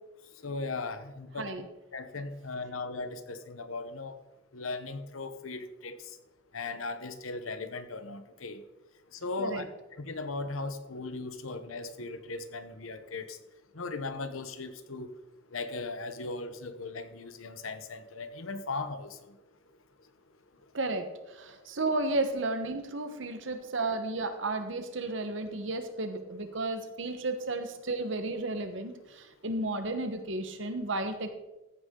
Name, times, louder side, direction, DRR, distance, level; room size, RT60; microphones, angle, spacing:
voice 1, 0.4-1.5 1.9-4.1 4.5-6.0 6.5-8.6 9.2-9.6 10.0-13.4 13.7-15.1 15.5-19.2, left 3 dB, 85° left, 10 dB, 1.0 m, -37 dB
voice 2, 20.7-21.1 21.4-28.9 29.4-31.4, right 2 dB, 65° right, 8 dB, 1.2 m, -33 dB
14.0 x 8.2 x 3.8 m, 1.0 s
head